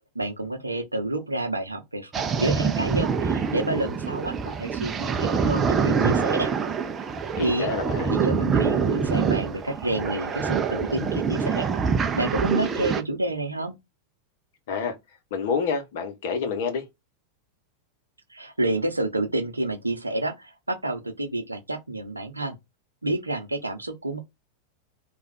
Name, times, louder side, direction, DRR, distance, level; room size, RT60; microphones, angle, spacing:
voice 1, 0.1-6.5 7.4-7.8 8.1-11.7 12.1-13.7 18.3-22.6 23.0-24.2, right 1 dB, 80° right, 0.7 m, -29 dB
sound 1, 2.1-13.0, right 6 dB, 20° right, 0.5 m, -25 dB
voice 2, 7.3-8.2 14.7-15.0 15.3-16.9, left 5 dB, 55° left, 0.8 m, -28 dB
3.4 x 2.3 x 4.0 m
figure-of-eight pair, 90°, 0 cm